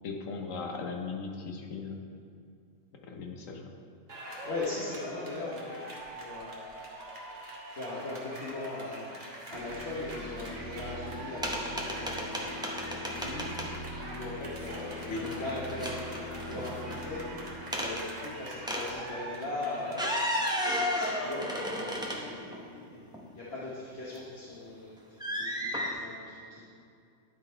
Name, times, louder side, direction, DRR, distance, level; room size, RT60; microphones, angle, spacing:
voice 1, 0.0-2.0 3.1-3.7 15.1-15.2, left 4 dB, 80° left, 2 dB, 1.2 m, -37 dB
sound 1, 4.1-21.4, right 1 dB, 35° right, 1.3 m, -44 dB
voice 2, 4.4-5.8 6.1-7.4 7.7-13.6 14.0-20.4 20.6-26.7, left 2 dB, 55° left, -8 dB, 1.3 m, -40 dB
sound 2, 9.5-19.5, left 1 dB, 60° right, 1.1 m, -43 dB
sound 3, 11.4-13.7 15.0-15.4 15.7-17.0 17.7-18.0 18.7-18.9 19.8-22.6 23.1-23.2 25.2-25.9, equal, 5° right, 0.6 m, -33 dB
11.5 x 3.9 x 4.4 m, 2.4 s
omnidirectional pair, 1.4 m